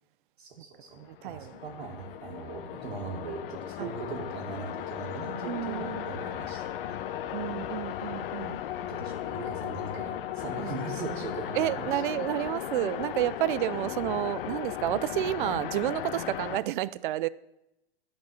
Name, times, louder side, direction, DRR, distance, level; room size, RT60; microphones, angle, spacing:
voice 1, 0.4-6.6 6.9-7.0 7.3-7.5 8.8-12.0, right 4 dB, 80° right, 2.2 m, -40 dB
voice 2, 0.9-1.6 3.8-3.9 5.4-6.0 7.3-8.6 10.6-10.7 11.6-17.3, right 15 dB, 55° right, 0.5 m, -30 dB
sound 1, 1.0-16.6, left 11 dB, 60° left, 0.7 m, -36 dB
10.5 x 5.3 x 7.0 m
hypercardioid pair, 120°, 31 cm